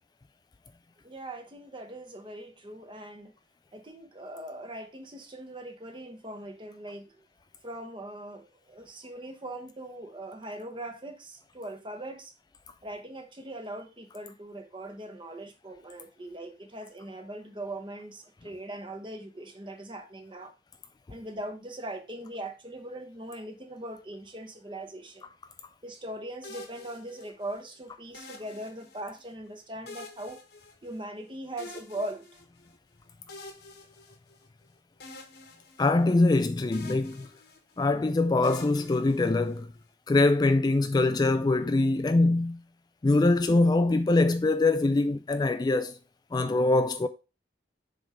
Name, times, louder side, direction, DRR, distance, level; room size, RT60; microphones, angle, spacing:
voice 1, 1.0-3.4 3.7-7.2 7.6-12.3 12.8-20.5 21.1-25.3 25.8-30.4 30.8-32.3, right 1 dB, 30° right, 1.1 m, -40 dB
sound 1, 26.4-27.6 28.1-29.3 29.9-31.2 31.6-32.8 33.3-34.6 35.0-36.4 36.7-37.9 38.4-39.8, left 3 dB, 65° left, 1.3 m, -47 dB
voice 2, 35.8-37.3 37.8-39.7 40.1-42.6 43.0-46.0 46.3-47.1, left 2 dB, 25° left, 0.3 m, -23 dB
7.2 x 3.6 x 4.9 m
head